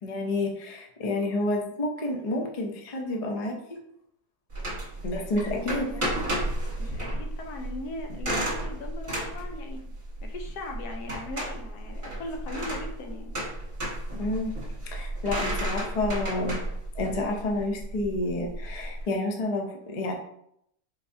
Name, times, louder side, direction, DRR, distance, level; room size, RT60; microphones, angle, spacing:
voice 1, 0.0-3.6 5.0-6.0 14.2-14.5 14.9-16.6 17.0-20.1, left 2 dB, 60° left, 1 dB, 0.4 m, -29 dB
sound 1, 4.5-19.0, right 1 dB, 20° right, 1.4 m, -33 dB
voice 2, 6.8-9.8 10.2-13.4, left 2 dB, 80° left, 3 dB, 1.2 m, -39 dB
4.6 x 3.3 x 2.6 m, 0.75 s
omnidirectional pair, 1.7 m